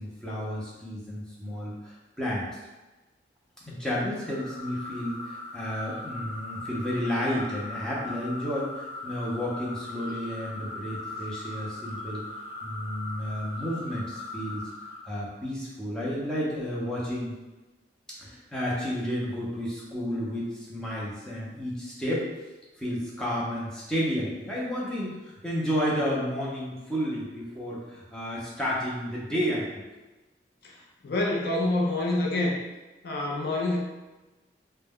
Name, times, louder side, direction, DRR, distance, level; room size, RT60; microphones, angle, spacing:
voice 1, 0.0-2.6 3.6-12.2 12.6-14.7 15.0-17.3 18.2-22.3 22.8-29.8, equal, 5° left, -7 dB, 0.6 m, -31 dB
sound 1, 4.2-15.1, left 2 dB, 30° left, 1.0 m, -39 dB
voice 2, 30.6-32.6 33.0-33.8, left 2 dB, 60° left, -1 dB, 0.5 m, -27 dB
2.2 x 2.1 x 3.5 m, 1.1 s
head